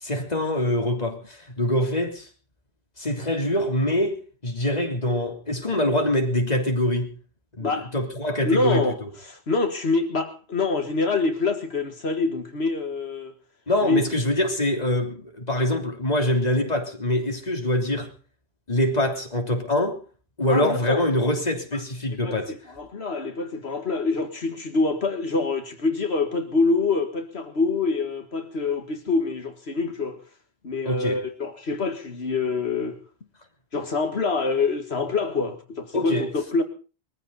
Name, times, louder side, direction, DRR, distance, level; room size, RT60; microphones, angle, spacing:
voice 1, 0.0-2.3 3.0-7.1 7.6-9.1 13.7-18.1 18.7-20.0 20.4-22.5 30.8-31.2 35.9-36.3, left 1 dB, 40° left, 3.3 m, -24 dB
voice 2, 7.6-7.9 8.4-13.3 13.8-14.0 20.5-21.1 22.2-30.2 30.6-33.0 33.7-36.6, left 3 dB, 75° left, 2.0 m, -25 dB
22.0 x 15.0 x 4.1 m
omnidirectional pair, 1.1 m